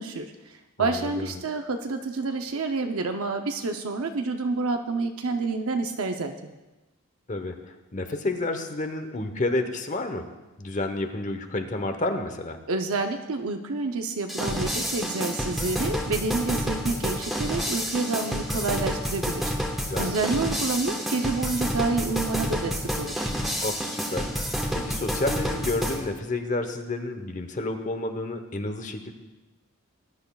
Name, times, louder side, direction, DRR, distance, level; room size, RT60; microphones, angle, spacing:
voice 1, 0.0-6.3 12.7-19.5 20.0-23.3, right 3 dB, 80° right, 4 dB, 0.7 m, -28 dB
voice 2, 0.8-1.4 7.3-7.6 7.9-10.3 10.6-12.6 19.9-20.2 23.6-24.3 24.7-29.1, left 2 dB, 35° left, 7 dB, 0.9 m, -30 dB
sound 1, 14.3-26.0, equal, ahead, 1.2 m, -29 dB
20.0 x 10.5 x 2.3 m, 1.1 s
head